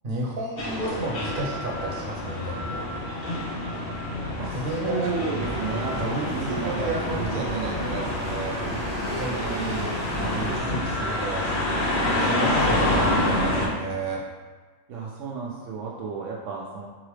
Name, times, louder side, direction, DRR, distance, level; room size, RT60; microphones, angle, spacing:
voice 1, 0.0-2.8 4.5-5.1 6.0-8.9 9.2-9.9 10.3-11.5 11.9-14.2, right 2 dB, 45° right, -3 dB, 0.9 m, -32 dB
sound 1, 0.6-13.7, left 1 dB, 55° left, 0.9 m, -28 dB
voice 2, 4.4-8.2 9.4-10.0 14.9-16.9, right 4 dB, 75° right, -3 dB, 0.9 m, -33 dB
sound 2, 5.4-10.6, right 1 dB, 25° left, 1.4 m, -32 dB
4.0 x 3.7 x 3.2 m, 1.3 s
omnidirectional pair, 1.4 m